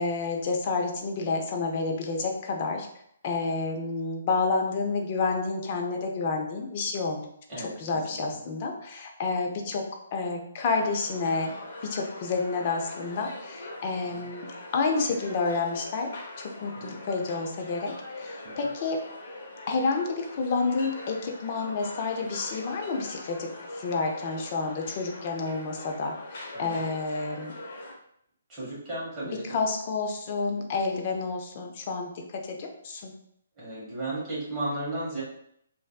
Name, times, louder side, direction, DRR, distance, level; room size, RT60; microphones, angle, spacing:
voice 1, 0.0-2.9 3.2-7.2 7.6-9.8 10.1-11.5 11.8-16.1 16.4-19.0 19.7-27.5 29.2-33.1, left 4 dB, 40° left, 2 dB, 0.5 m, -29 dB
voice 2, 7.5-8.2 16.8-17.0 18.4-18.7 26.5-26.8 28.5-29.6 33.6-35.2, right 2 dB, 20° right, -9 dB, 1.2 m, -35 dB
sound 1, 10.6-27.9, left 2 dB, 55° left, 0.8 m, -42 dB
3.2 x 2.5 x 2.3 m, 0.71 s
hypercardioid pair, 145°, 0 cm